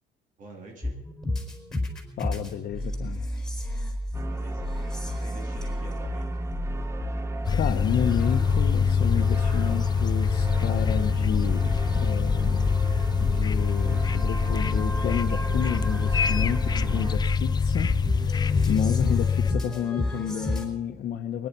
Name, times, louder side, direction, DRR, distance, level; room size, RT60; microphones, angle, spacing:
voice 1, 0.4-1.0 4.3-4.7 5.1-6.3, right 2 dB, 50° right, 1 dB, 2.6 m, -46 dB
sound 1, 0.8-20.7, equal, 5° left, 4.3 m, -31 dB
voice 2, 2.2-3.3 7.5-12.7 13.2-21.5, left 9 dB, 60° left, 3 dB, 0.9 m, -31 dB
sound 2, 4.1-17.2, right 3 dB, 15° right, 0.8 m, -40 dB
sound 3, 7.4-19.5, left 6 dB, 25° left, 0.4 m, -25 dB
20.5 x 10.5 x 5.4 m, 0.95 s
cardioid pair, 110°, 17 cm